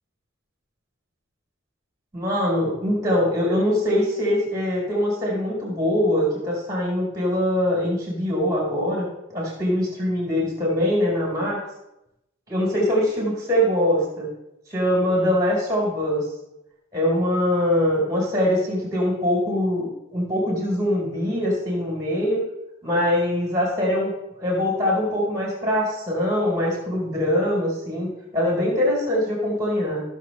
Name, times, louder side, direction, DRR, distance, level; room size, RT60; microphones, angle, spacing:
voice 1, 2.1-11.6 12.5-14.3 14.7-16.2 16.9-22.4 22.8-24.1 24.4-30.0, left 1 dB, 15° right, -3 dB, 4.6 m, -23 dB
17.5 x 6.9 x 3.3 m, 0.88 s
head